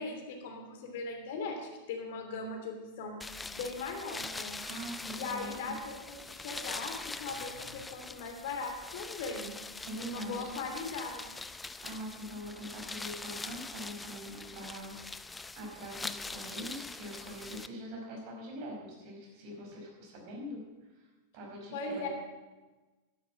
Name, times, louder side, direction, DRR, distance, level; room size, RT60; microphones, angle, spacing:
voice 1, 0.0-3.2 3.5-4.6 5.1-9.5 9.9-11.4 21.7-22.1, left 3 dB, 55° left, 3 dB, 2.8 m, -39 dB
sound 1, 3.2-17.7, left 3 dB, 10° left, 0.6 m, -43 dB
voice 2, 4.6-5.7 7.3-7.8 9.8-10.5 11.8-14.9 15.5-20.6 20.9-21.1 21.3-22.1, equal, 45° right, 0 dB, 5.1 m, -43 dB
11.5 x 11.0 x 8.6 m, 1.2 s
figure-of-eight pair, 90°, 0 cm